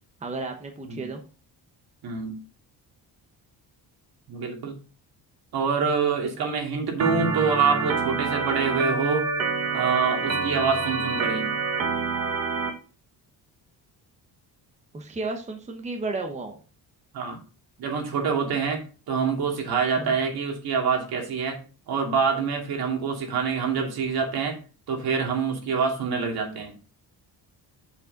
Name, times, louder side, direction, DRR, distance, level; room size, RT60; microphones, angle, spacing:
voice 1, 0.2-1.2 6.4-6.7 14.9-16.5 20.0-20.1, right 3 dB, 15° right, 3 dB, 1.0 m, -33 dB
voice 2, 2.0-2.3 4.3-4.8 5.5-9.3 9.7-11.5 17.1-17.4 17.8-21.6 21.9-24.6 24.9-26.7, right 5 dB, 60° right, 2 dB, 2.6 m, -26 dB
Organ, 7.0-12.7, right 4 dB, 35° right, 1.3 m, -27 dB
7.2 x 6.9 x 3.9 m, 0.36 s
cardioid pair, 175°, 40 cm